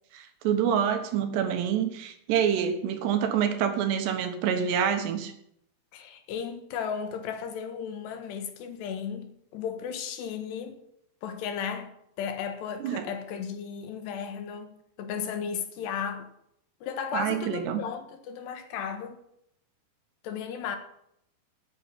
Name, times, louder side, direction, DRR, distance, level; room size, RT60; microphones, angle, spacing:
voice 1, 0.1-5.3 12.8-13.1 17.1-17.8, right 8 dB, 85° right, 3.5 m, -27 dB
voice 2, 5.9-10.8 11.2-11.9 12.2-16.3 16.8-19.2 20.2-20.8, left 7 dB, 85° left, 3.6 m, -35 dB
9.0 x 8.9 x 8.9 m
omnidirectional pair, 4.7 m